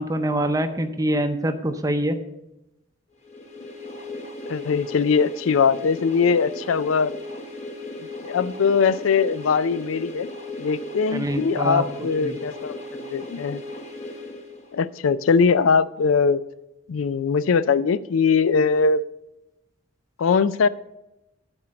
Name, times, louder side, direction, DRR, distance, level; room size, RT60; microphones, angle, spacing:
voice 1, 0.0-2.2 11.1-12.4, right 1 dB, 15° right, 8 dB, 0.6 m, -25 dB
sound 1, 3.2-15.1, left 2 dB, 35° left, 1.0 m, -36 dB
voice 2, 4.5-7.1 8.2-10.3 10.6-13.6 14.7-16.4 16.9-19.0 20.2-20.7, left 5 dB, 80° left, 16 dB, 0.4 m, -21 dB
11.0 x 4.5 x 7.5 m, 0.95 s
head